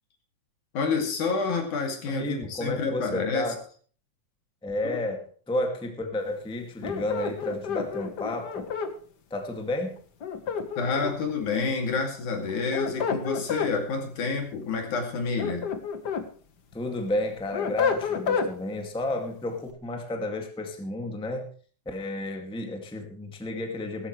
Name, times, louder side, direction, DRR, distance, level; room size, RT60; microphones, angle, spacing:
voice 1, 0.7-3.5 4.8-5.0 10.8-15.7, left 4 dB, 70° left, 3 dB, 3.9 m, -28 dB
voice 2, 2.1-3.6 4.6-8.6 9.3-10.0 16.7-21.5 21.8-24.1, left 1 dB, ahead, 3 dB, 1.4 m, -32 dB
sound 1, 6.8-8.9 10.2-11.3 12.5-13.7 15.1-16.3 16.7-18.5, left 6 dB, 55° left, 1.2 m, -29 dB
17.0 x 14.0 x 3.2 m, 0.42 s
omnidirectional pair, 3.6 m